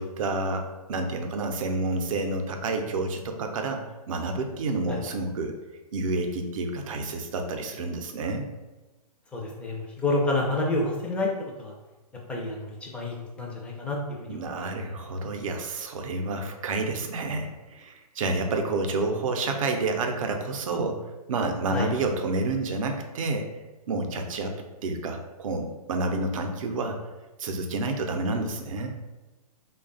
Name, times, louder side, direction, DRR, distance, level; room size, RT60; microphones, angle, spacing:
voice 1, 0.0-5.5 5.9-8.5 14.3-21.0 21.3-23.5 23.9-24.6 24.8-27.0 27.4-28.9, right 2 dB, 55° right, 4 dB, 0.6 m, -29 dB
voice 2, 9.3-11.3 11.6-11.7 12.3-14.4 21.7-21.9, left 2 dB, 5° left, -2 dB, 0.4 m, -29 dB
3.3 x 2.3 x 3.8 m, 1.1 s
hypercardioid pair, 135°, 20 cm